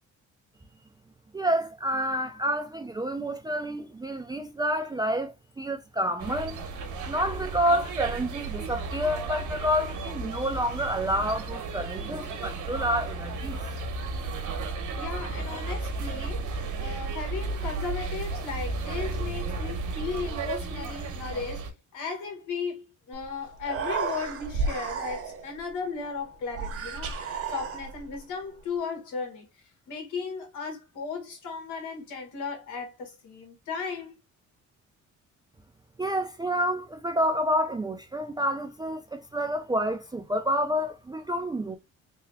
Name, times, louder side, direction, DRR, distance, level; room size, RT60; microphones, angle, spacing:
voice 1, 1.3-6.6 7.1-13.6 36.0-41.8, equal, 15° right, 0.4 m, -29 dB
sound 1, 6.2-21.7, right 3 dB, 75° right, 1.0 m, -33 dB
voice 2, 15.0-16.5 16.8-29.5 29.9-34.2, left 5 dB, 85° left, 1.5 m, -36 dB
Human voice, 23.1-23.2 23.5-25.6 26.5-28.2, right 4 dB, 50° right, 0.9 m, -32 dB
3.5 x 2.2 x 3.4 m
cardioid pair, 90°, 30 cm